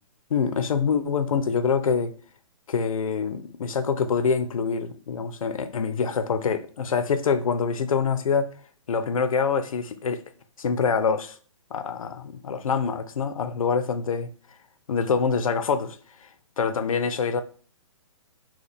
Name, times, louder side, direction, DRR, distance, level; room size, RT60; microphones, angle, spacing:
voice 1, 0.3-2.1 2.7-8.5 8.9-10.2 10.6-11.3 11.7-14.3 14.9-16.0 16.6-17.4, left 5 dB, 80° left, 0.6 m, -25 dB
6.2 x 2.2 x 3.4 m
hypercardioid pair, 175°, 17 cm